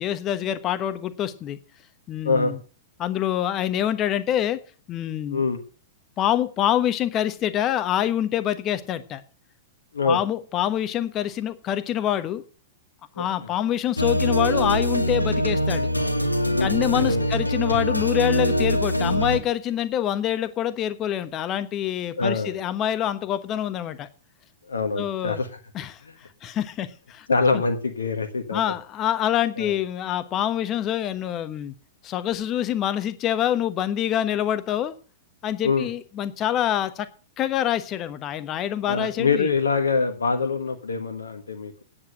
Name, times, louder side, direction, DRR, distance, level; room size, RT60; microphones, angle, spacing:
voice 1, 0.0-1.6 2.1-2.6 3.0-4.6 4.9-5.4 6.2-9.2 10.0-12.4 13.2-15.9 16.6-24.1 25.0-25.4 25.7-26.0 26.4-27.3 27.5-27.6 28.5-31.7 32.0-34.9 35.4-37.1 37.4-39.5, left 11 dB, 30° left, 12 dB, 1.2 m, -26 dB
sound 1, 14.0-19.4, equal, 85° left, 1.5 m, -23 dB
voice 2, 22.2-22.6 24.7-25.5 27.3-28.6 29.6-29.7 35.6-35.9 38.9-41.8, left 4 dB, 70° left, 6 dB, 1.4 m, -24 dB
9.5 x 8.6 x 7.7 m, 0.40 s
figure-of-eight pair, 100°, 0 cm